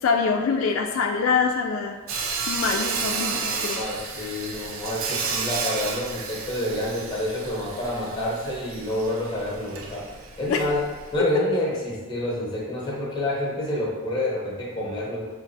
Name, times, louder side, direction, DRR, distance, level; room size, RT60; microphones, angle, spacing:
voice 1, 0.0-2.0 2.5-3.8 10.5-10.6, left 5 dB, 75° left, 2 dB, 0.3 m, -24 dB
Sawing, 2.1-11.2, right 5 dB, 70° right, 0.5 m, -32 dB
voice 2, 3.5-10.1 10.4-10.8 11.1-15.3, left 1 dB, 20° left, -4 dB, 0.9 m, -28 dB
5.7 x 2.5 x 2.6 m, 1.4 s
head